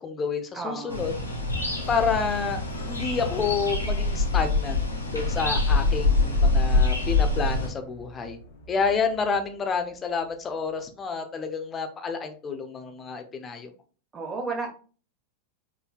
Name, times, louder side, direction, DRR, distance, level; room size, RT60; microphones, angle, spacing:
voice 1, 0.0-1.1 1.9-2.6 2.9-4.8 5.1-8.4 8.7-13.7, left 5 dB, 20° left, 7 dB, 0.9 m, -29 dB
voice 2, 0.5-1.2 14.1-14.7, right 3 dB, 20° right, 3 dB, 1.3 m, -33 dB
sound 1, 0.9-7.7, left 3 dB, 80° left, 1.4 m, -25 dB
sound 2, 1.7-10.3, left 1 dB, 50° left, 1.3 m, -43 dB
5.4 x 4.1 x 2.4 m, 0.38 s
figure-of-eight pair, 90°, 0 cm